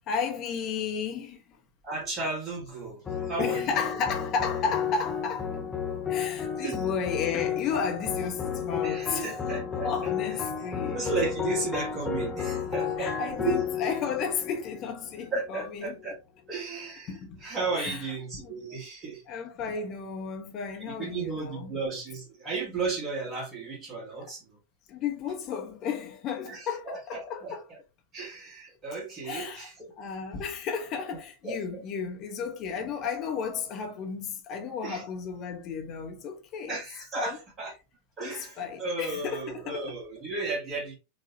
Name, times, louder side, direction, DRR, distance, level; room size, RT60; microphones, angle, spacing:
voice 1, 0.1-1.4 3.4-5.5 6.1-9.4 9.8-11.0 13.0-16.0 17.1-17.4 17.7-18.0 18.4-18.5 19.3-21.8 24.9-27.6 29.2-29.7 30.0-36.7 37.2-37.4 38.2-39.8, left 6 dB, 35° left, 1.1 m, -33 dB
voice 2, 1.8-3.7 4.6-4.7 6.6-6.9 8.8-10.1 10.9-13.7 15.3-16.2 16.5-19.2 20.9-24.4 26.4-27.8 28.1-29.9 31.4-31.6 34.8-35.1 36.7-37.7 38.2-41.0, right 4 dB, 25° right, 1.9 m, -34 dB
sound 1, 3.1-15.5, left 7 dB, 15° left, 1.0 m, -32 dB
5.0 x 2.7 x 2.8 m
figure-of-eight pair, 90°, 0 cm